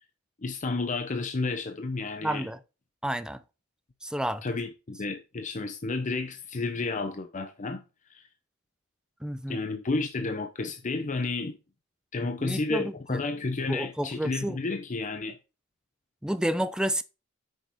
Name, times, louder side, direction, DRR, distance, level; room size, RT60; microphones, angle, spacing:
voice 1, 0.4-2.5 4.4-7.8 8.1-8.3 9.5-11.6 12.1-15.4, left 3 dB, 40° left, 0.7 m, -31 dB
voice 2, 2.2-2.6 3.0-3.4 4.0-4.4 9.2-9.6 12.2-13.2 13.7-14.6 16.2-17.0, right 1 dB, 5° right, 0.5 m, -30 dB
8.7 x 6.5 x 3.6 m
head